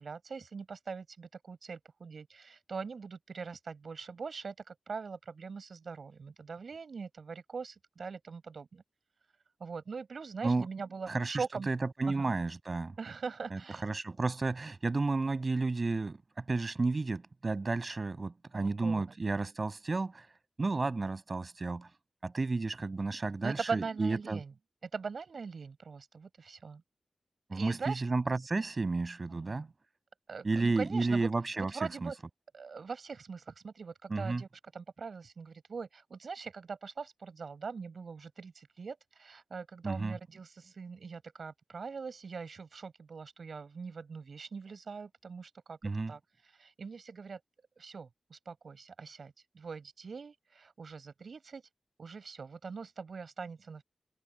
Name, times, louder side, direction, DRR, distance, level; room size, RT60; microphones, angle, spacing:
voice 1, 0.0-8.8 9.6-11.7 12.1-12.3 13.0-13.8 18.8-19.0 23.4-24.5 24.8-26.8 27.5-28.0 29.3-29.7 30.3-32.2 32.5-45.8 46.1-47.4 47.8-51.6 52.0-53.8, right 5 dB, 70° right, 6.8 m, -42 dB
voice 2, 11.1-11.4 11.7-12.9 13.5-20.3 20.6-21.9 22.2-24.4 27.5-29.7 30.4-31.7 32.0-32.1 34.1-34.4 39.8-40.1 45.8-46.1, right 3 dB, 40° right, 7.9 m, -32 dB
wide cardioid pair, 105°, 0 cm